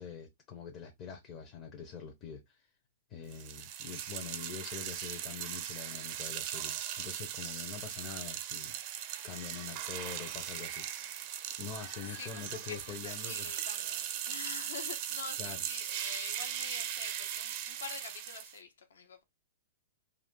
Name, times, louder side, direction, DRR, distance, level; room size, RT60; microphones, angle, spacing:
voice 1, 0.0-2.7 3.1-8.8 9.2-11.3 11.6-13.6 15.4-15.6, left 7 dB, 35° left, 0.6 m, -45 dB
sound 1, 3.3-18.6, right 10 dB, 45° right, 0.5 m, -39 dB
voice 2, 12.0-19.2, left 6 dB, 75° left, 0.7 m, -46 dB
2.4 x 2.4 x 3.6 m
hypercardioid pair, 115°, 0 cm